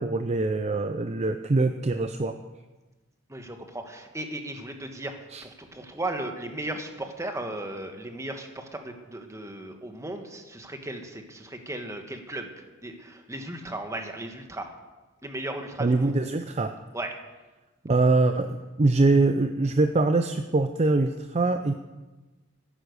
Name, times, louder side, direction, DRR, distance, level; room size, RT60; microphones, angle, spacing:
voice 1, 0.0-2.4 5.3-5.4 15.8-16.7 17.8-21.7, right 3 dB, 30° right, 8 dB, 0.5 m, -23 dB
voice 2, 3.3-12.5 12.8-14.7 15.2-16.1 16.9-17.2, right 1 dB, 15° right, 5 dB, 1.4 m, -36 dB
13.5 x 10.5 x 6.6 m, 1.2 s
head